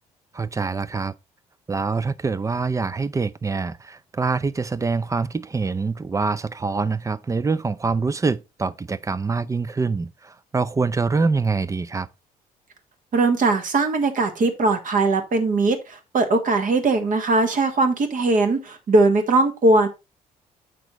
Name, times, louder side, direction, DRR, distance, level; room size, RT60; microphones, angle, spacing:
voice 1, 0.3-1.1 1.7-12.1, right 4 dB, 15° right, 0.5 m, -25 dB
voice 2, 13.1-19.9, right 2 dB, 40° right, 1.4 m, -20 dB
7.8 x 6.0 x 2.9 m
figure-of-eight pair, 50°, 20 cm